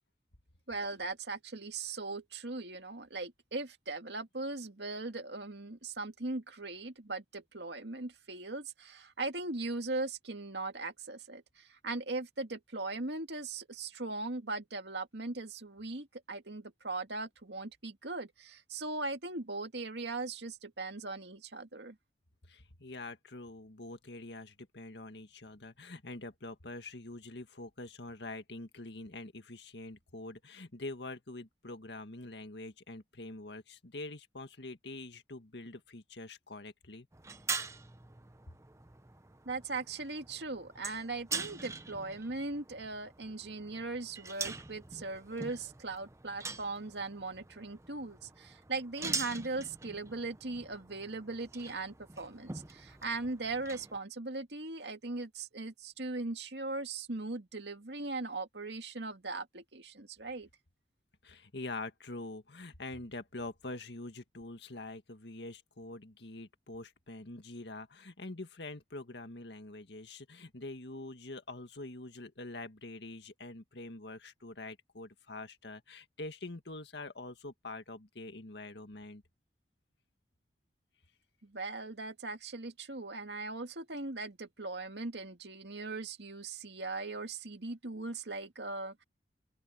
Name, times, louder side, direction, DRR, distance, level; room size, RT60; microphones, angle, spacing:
voice 1, 0.7-22.0 39.5-60.5 81.4-89.0, right 3 dB, 75° right, 2.2 m, -39 dB
voice 2, 22.5-37.1 61.2-79.2, left 2 dB, 75° left, 1.9 m, -45 dB
sound 1, 37.1-54.0, right 4 dB, 15° right, 0.8 m, -44 dB
open air
head